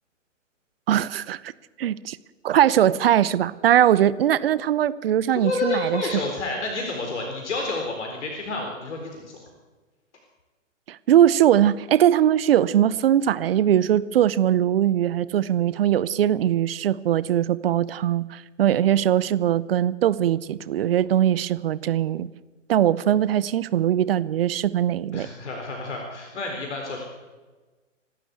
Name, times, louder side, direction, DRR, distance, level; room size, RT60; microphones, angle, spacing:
voice 1, 0.9-1.4 1.8-2.2 2.4-6.0 10.9-22.3 22.7-25.3, right 11 dB, 50° right, 18 dB, 0.9 m, -21 dB
voice 2, 5.4-9.4 25.1-27.1, left 3 dB, 60° left, 1 dB, 4.2 m, -30 dB
27.5 x 12.5 x 8.2 m, 1.3 s
figure-of-eight pair, 120°, 39 cm